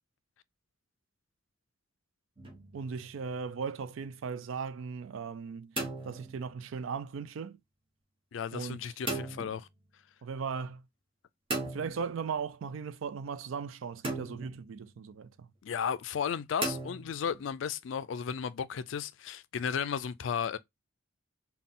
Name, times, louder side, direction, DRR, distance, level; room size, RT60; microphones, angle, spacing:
sound 1, 2.4-2.9 5.5-6.7 9.1-9.6 11.5-12.4 14.0-14.7 16.6-17.5, right 2 dB, 25° right, 1.1 m, -37 dB
voice 1, 2.7-5.8 6.0-7.6 8.5-8.8 10.2-10.8 11.7-15.5, right 5 dB, 85° right, 0.4 m, -37 dB
voice 2, 8.3-9.7 15.6-20.6, left 7 dB, 70° left, 0.4 m, -34 dB
3.9 x 2.3 x 3.5 m
head